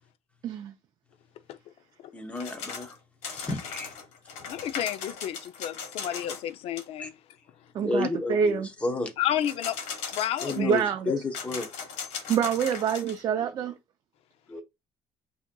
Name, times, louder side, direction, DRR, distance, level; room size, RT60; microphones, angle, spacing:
voice 1, 0.4-0.7 7.7-8.7 10.6-11.1 12.3-13.7, right 7 dB, 35° right, 0.4 m, -26 dB
voice 2, 2.1-3.0 3.3-4.0 7.0-7.1 7.8-9.1 10.4-11.7 13.4-13.7 14.5-14.6, left 2 dB, 10° left, 0.8 m, -32 dB
sound 1, 2.4-3.0 3.2-6.5 6.8-6.9 9.4-10.8 11.3-13.2, left 6 dB, 75° left, 1.3 m, -38 dB
voice 3, 4.5-7.1 9.2-9.8 10.1-10.7 11.1-11.2, left 11 dB, 60° left, 0.5 m, -31 dB
8.4 x 2.8 x 2.2 m
cardioid pair, 160°, 12 cm